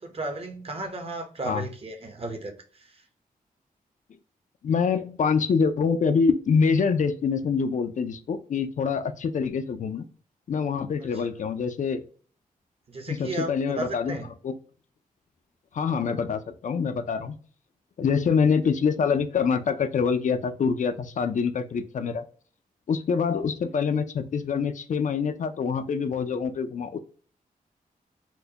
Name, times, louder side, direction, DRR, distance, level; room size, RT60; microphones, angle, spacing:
voice 1, 0.0-3.0 11.0-11.1 12.9-14.3, right 2 dB, 40° right, 6 dB, 0.8 m, -35 dB
voice 2, 4.6-10.0 10.5-12.0 13.1-14.2 14.4-14.5 15.7-17.3 18.0-22.2 22.9-27.0, left 5 dB, 55° left, 10 dB, 0.4 m, -25 dB
4.2 x 2.1 x 2.7 m, 0.43 s
wide cardioid pair, 95°, 15 cm